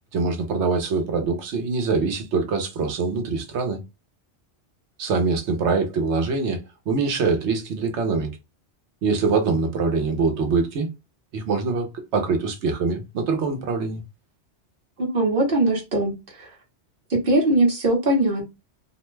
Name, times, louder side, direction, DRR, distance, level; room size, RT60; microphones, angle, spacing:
voice 1, 0.1-3.8 5.0-8.3 9.0-10.9 11.3-14.0, right 4 dB, 80° right, 1.0 m, -24 dB
voice 2, 15.0-16.5 17.1-18.4, right 2 dB, 55° right, 1.0 m, -21 dB
2.5 x 2.1 x 3.1 m
omnidirectional pair, 1.2 m